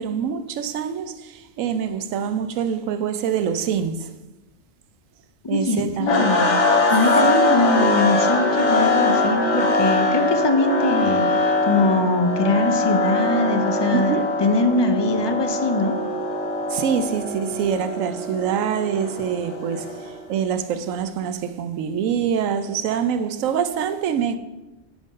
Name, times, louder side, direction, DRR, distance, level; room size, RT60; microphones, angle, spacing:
voice 1, 0.0-4.1 5.5-6.3 7.2-7.6 13.9-14.3 16.7-24.4, right 7 dB, 85° right, 1.0 m, -25 dB
voice 2, 5.4-6.6 6.9-16.0, left 2 dB, 40° left, 0.4 m, -22 dB
sound 1, 6.1-20.2, left 2 dB, 65° left, 1.4 m, -22 dB
9.7 x 3.8 x 5.2 m
omnidirectional pair, 1.4 m